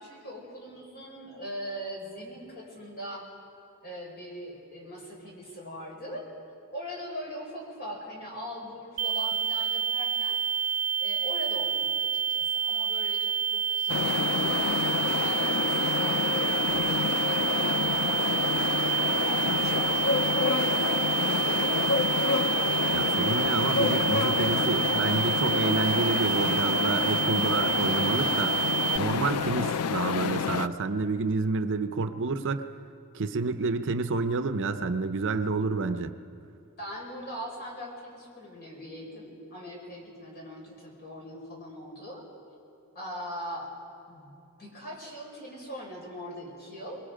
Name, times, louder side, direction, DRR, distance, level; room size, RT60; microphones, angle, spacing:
voice 1, 0.0-3.3 3.8-6.3 6.7-10.4 11.0-17.0 17.3-22.0 29.5-29.8 36.8-42.3 42.9-43.7 44.1-44.3 44.6-47.0, equal, 45° left, -2 dB, 5.4 m, -41 dB
sound 1, 9.0-29.0, right 7 dB, 90° right, 0.4 m, -28 dB
sound 2, 13.9-30.7, left 6 dB, 85° left, 0.5 m, -28 dB
voice 2, 22.9-28.6 29.0-32.7 33.1-36.1, right 3 dB, 60° right, 9 dB, 0.7 m, -29 dB
25.5 x 21.0 x 5.1 m, 2.6 s
head